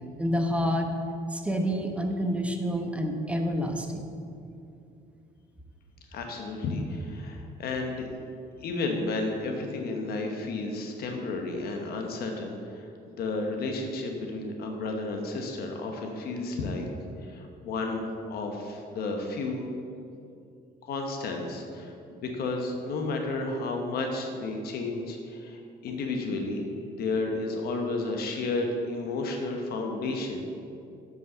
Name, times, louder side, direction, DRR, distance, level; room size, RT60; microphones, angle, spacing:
voice 1, 0.2-0.9 1.3-4.1, equal, 5° right, 3 dB, 1.0 m, -28 dB
voice 2, 6.1-8.1 8.6-16.9 17.2-19.6 20.8-26.7 27.0-30.4, left 3 dB, 65° left, 2 dB, 1.1 m, -32 dB
7.7 x 5.5 x 6.8 m, 2.6 s
cardioid pair, 110°, 17 cm